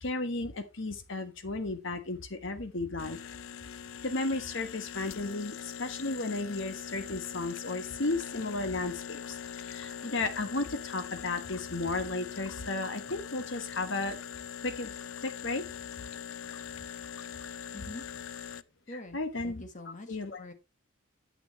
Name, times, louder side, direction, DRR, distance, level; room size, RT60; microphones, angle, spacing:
voice 1, 0.0-3.2 4.0-14.2 14.6-14.9 15.2-15.6 18.9-19.6 20.1-20.4, left 2 dB, 65° left, 1.2 m, -34 dB
sound 1, 3.0-18.6, left 8 dB, 80° left, 0.4 m, -42 dB
voice 2, 18.9-20.5, left 1 dB, 40° left, 1.3 m, -45 dB
9.1 x 7.9 x 2.9 m
head